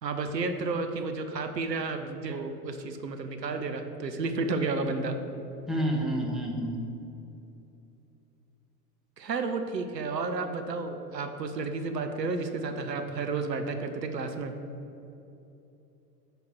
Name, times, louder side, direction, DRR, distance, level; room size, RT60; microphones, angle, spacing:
voice 1, 0.0-5.2 9.2-14.5, right 3 dB, 85° right, 7 dB, 0.6 m, -32 dB
voice 2, 5.7-6.8, equal, ahead, -1 dB, 0.5 m, -29 dB
4.9 x 4.8 x 6.0 m, 2.9 s
figure-of-eight pair, 80°, 49 cm